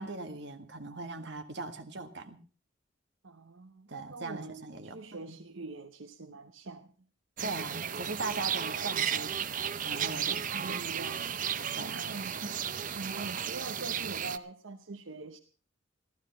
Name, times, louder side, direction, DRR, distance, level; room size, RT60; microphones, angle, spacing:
voice 1, 0.0-2.4 3.9-5.4 7.4-9.3 9.8-10.8 11.8-12.2 12.4-12.6, right 3 dB, 60° right, 1.8 m, -40 dB
voice 2, 3.2-6.9 10.3-11.3 11.8-12.3 12.9-15.4, right 3 dB, 75° right, 1.0 m, -43 dB
sound 1, 7.4-14.4, right 8 dB, 40° right, 0.6 m, -34 dB
15.0 x 13.0 x 5.6 m
head